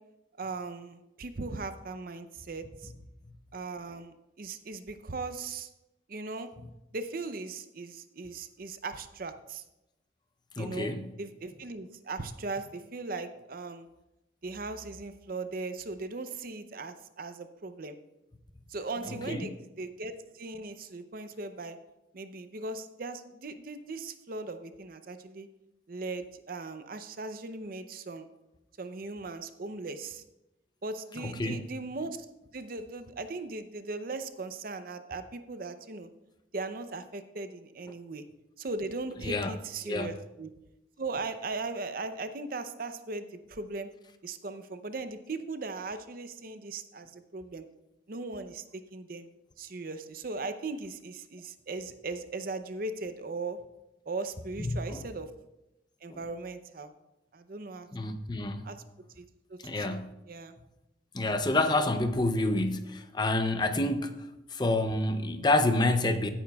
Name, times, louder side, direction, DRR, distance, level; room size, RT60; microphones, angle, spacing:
voice 1, 0.4-2.9 3.5-5.7 6.1-6.5 6.9-9.6 10.6-10.9 11.2-13.9 14.4-18.0 18.7-21.8 22.1-25.5 25.9-28.3 28.8-30.2 30.8-32.3 32.5-36.1 36.5-38.2 38.6-40.5 41.0-43.9 44.2-47.7 48.1-48.6 48.9-49.3 49.6-53.6 54.1-55.3 56.0-56.9 57.3-58.1 58.6-58.8 59.2-59.3 59.5-60.0 60.3-60.5, right 3 dB, 50° right, 9 dB, 0.6 m, -38 dB
voice 2, 10.6-11.1 19.1-19.4 31.2-31.6 39.2-39.5 39.8-40.1 54.6-55.1 56.1-56.2 57.9-58.7 59.6-60.1 61.1-66.3, left 2 dB, 25° left, 8 dB, 0.6 m, -28 dB
16.0 x 9.0 x 2.3 m, 0.94 s
head